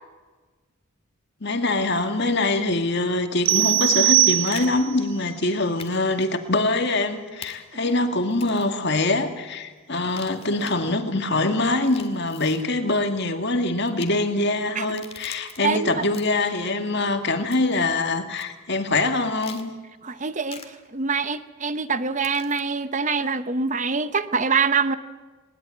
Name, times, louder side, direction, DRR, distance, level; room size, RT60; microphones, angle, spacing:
voice 1, 1.4-19.7, left 2 dB, 50° left, 6 dB, 2.1 m, -24 dB
sound 1, 3.5-5.0, right 15 dB, 60° right, 0.6 m, -20 dB
sound 2, 3.9-4.7 5.8-6.0 6.2-6.3 7.4-7.5 8.3-8.7 9.9-10.8 11.7-12.6 13.8-14.1 14.8-15.6 16.0-16.5 17.5-17.8 18.4-18.5 19.4-19.7 20.5-20.7 22.2-22.6, left 7 dB, 25° left, 2.2 m, -42 dB
voice 2, 15.6-16.0 20.0-25.0, right 5 dB, 35° right, 12 dB, 0.8 m, -25 dB
20.5 x 20.5 x 8.6 m, 1.3 s
head